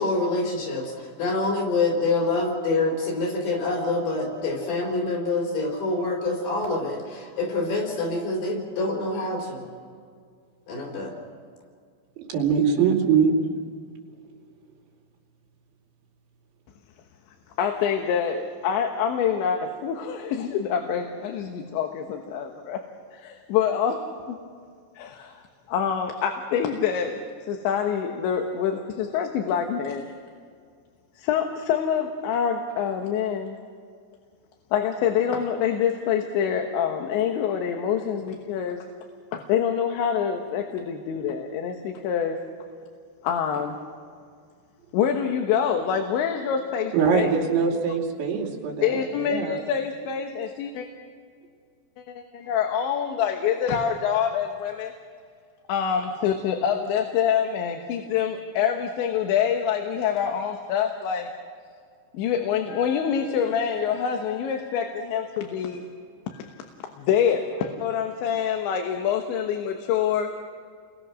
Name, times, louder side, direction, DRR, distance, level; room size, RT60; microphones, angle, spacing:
voice 1, 0.0-9.7 10.7-11.1, left 3 dB, 65° left, -1 dB, 6.9 m, -26 dB
voice 2, 12.2-13.3 46.9-49.6, right 6 dB, 90° right, -1 dB, 5.1 m, -23 dB
voice 3, 17.6-22.8 23.1-24.4 25.0-30.0 31.2-33.6 34.7-38.8 39.3-42.4 43.2-43.8 44.9-47.4 48.8-50.9 52.2-54.9 55.7-61.3 62.1-65.8 66.3-66.6 67.0-70.3, left 8 dB, 90° left, 4 dB, 3.7 m, -26 dB
30.0 x 22.5 x 6.3 m, 2.1 s
omnidirectional pair, 5.1 m